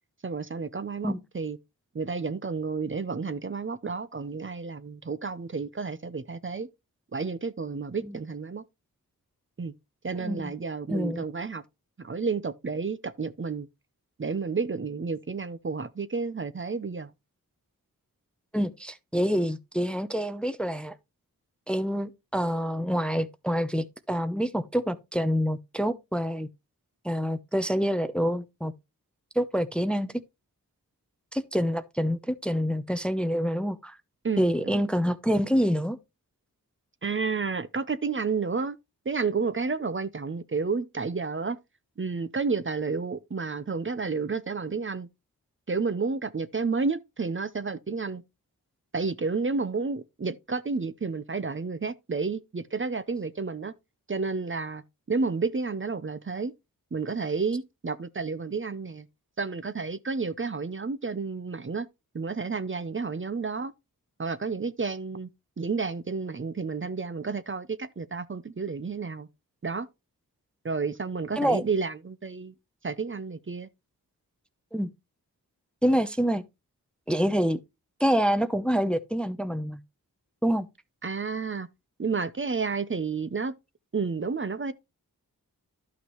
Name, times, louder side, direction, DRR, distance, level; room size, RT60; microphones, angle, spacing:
voice 1, 0.2-1.6 1.9-6.7 7.1-8.6 9.6-9.7 10.0-11.6 12.0-13.7 14.2-17.1 34.2-34.9 37.0-38.8 39.1-41.6 42.0-45.1 45.7-48.2 48.9-53.7 54.1-54.8 55.1-56.5 56.9-59.1 59.4-61.9 62.1-63.7 64.2-65.3 65.6-69.3 69.6-69.9 70.6-72.5 72.8-73.7 81.0-81.7 82.0-83.5 83.9-84.7, right 4 dB, 35° right, 0.7 m, -31 dB
voice 2, 10.2-10.5 10.9-11.2 18.5-20.9 21.7-26.5 27.0-28.7 29.4-30.1 31.3-34.0 34.4-36.0 71.4-71.6 74.7-74.9 75.8-76.4 77.1-77.6 78.0-79.8 80.4-80.7, equal, 5° left, 0.6 m, -26 dB
11.5 x 5.8 x 3.1 m
cardioid pair, 40°, 36 cm